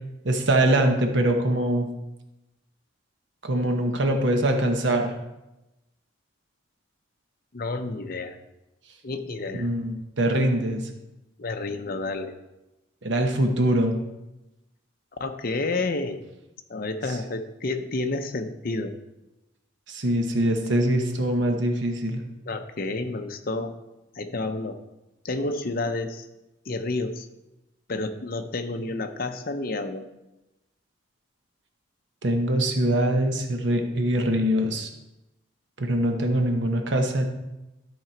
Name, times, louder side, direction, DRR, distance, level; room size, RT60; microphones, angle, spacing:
voice 1, 0.2-1.9 3.4-5.1 9.5-10.8 13.0-14.0 19.9-22.2 32.2-34.9 35.8-37.2, right 1 dB, 60° right, 4 dB, 1.0 m, -23 dB
voice 2, 7.5-8.4 9.0-9.7 11.4-12.3 15.2-16.2 16.7-18.9 22.5-23.8 24.1-24.8 25.2-26.3 26.7-27.3 27.9-30.1, left 2 dB, 45° left, 7 dB, 0.7 m, -30 dB
12.5 x 4.9 x 4.5 m, 0.97 s
head